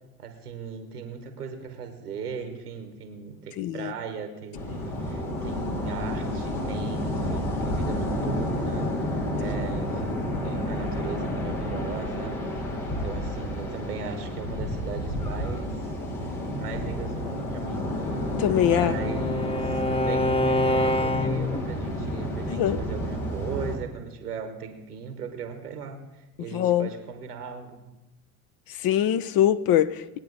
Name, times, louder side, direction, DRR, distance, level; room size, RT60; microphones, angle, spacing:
voice 1, 0.2-15.8 16.6-17.8 18.6-27.8, right 5 dB, 90° right, 1.5 m, -38 dB
voice 2, 3.6-3.9 18.4-19.0 22.5-22.8 26.5-26.9 28.8-30.2, left 11 dB, 50° left, 0.7 m, -23 dB
sound 1, 4.5-23.8, left 1 dB, 75° left, 2.6 m, -30 dB
Bowed string instrument, 18.1-21.7, left 1 dB, 15° left, 0.8 m, -27 dB
20.5 x 9.0 x 4.1 m
hypercardioid pair, 55°, 45 cm